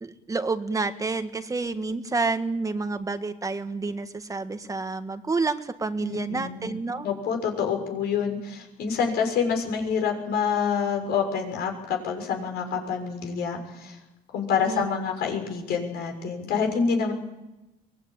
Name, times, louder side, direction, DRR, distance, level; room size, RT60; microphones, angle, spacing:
voice 1, 0.0-7.1 14.6-14.9, right 3 dB, 20° right, 9 dB, 1.6 m, -29 dB
voice 2, 6.0-6.7 7.0-14.0 14.3-17.1, left 6 dB, 75° left, 3 dB, 6.9 m, -27 dB
23.5 x 19.0 x 9.0 m, 0.98 s
cardioid pair, 110°, 17 cm